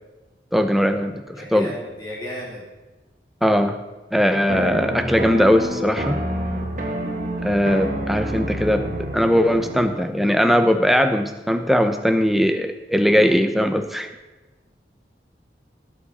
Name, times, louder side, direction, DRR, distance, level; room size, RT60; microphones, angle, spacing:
voice 1, 0.5-1.2 1.5-1.7 3.4-3.8 4.1-6.2 7.4-14.1, equal, ahead, 7 dB, 0.7 m, -19 dB
voice 2, 1.3-2.6, equal, 25° left, -6 dB, 3.4 m, -34 dB
sound 1, 4.5-10.1, equal, 45° right, 1.5 m, -28 dB
16.5 x 7.5 x 4.2 m, 1.2 s
head